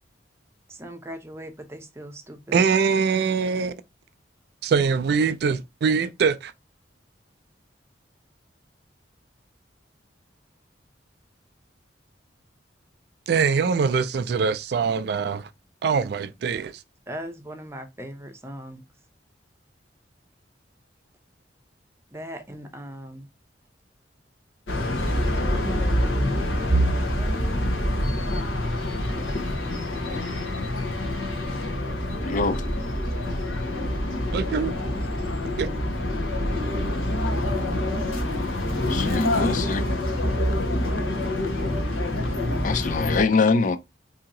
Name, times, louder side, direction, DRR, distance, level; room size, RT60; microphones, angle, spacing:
voice 1, 0.7-2.6 17.1-18.8 22.1-23.3 25.1-26.3 26.6-27.7 29.1-29.2 29.9-30.2 33.0-33.4 34.6-35.4, right 1 dB, 15° right, 0.6 m, -40 dB
voice 2, 2.5-3.7 4.6-6.5 13.3-15.5 15.8-16.8 34.3-34.7 35.6-35.7, right 5 dB, 60° right, 0.3 m, -23 dB
sound 1, 24.7-43.2, left 1 dB, 80° left, 0.9 m, -26 dB
sound 2, 26.7-38.5 39.0-39.2 39.6-39.8 40.6-41.1, right 2 dB, 85° right, 0.8 m, -35 dB
voice 3, 32.2-32.6 38.9-40.0 42.6-43.8, left 4 dB, 45° left, 0.3 m, -24 dB
2.8 x 2.7 x 3.7 m
head